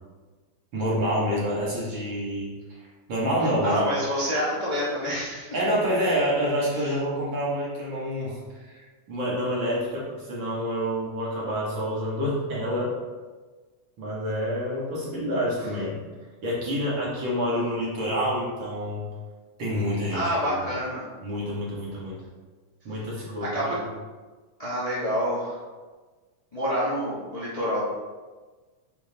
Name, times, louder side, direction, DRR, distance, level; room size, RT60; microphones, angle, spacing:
voice 1, 0.7-2.5 2.8-3.8 5.5-8.4 8.7-12.9 14.0-16.0 16.4-19.1 19.6-20.2 21.2-22.2 22.9-23.6, equal, 45° right, -6 dB, 2.0 m, -27 dB
voice 2, 3.6-5.5 6.7-6.9 20.1-21.0 23.4-23.8 24.6-25.6 26.5-27.8, equal, 55° left, -9 dB, 0.4 m, -27 dB
7.2 x 5.8 x 2.9 m, 1.3 s
omnidirectional pair, 3.4 m